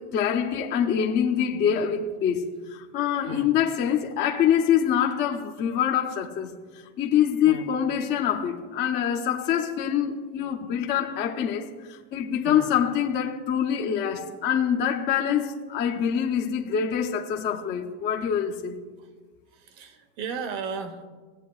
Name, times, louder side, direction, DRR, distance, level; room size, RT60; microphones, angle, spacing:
voice 1, 0.0-6.5 7.0-18.8, left 9 dB, 30° left, 0.6 m, -25 dB
voice 2, 19.5-21.1, right 5 dB, 70° right, 1.2 m, -35 dB
16.5 x 8.4 x 2.4 m
cardioid pair, 170°, 36 cm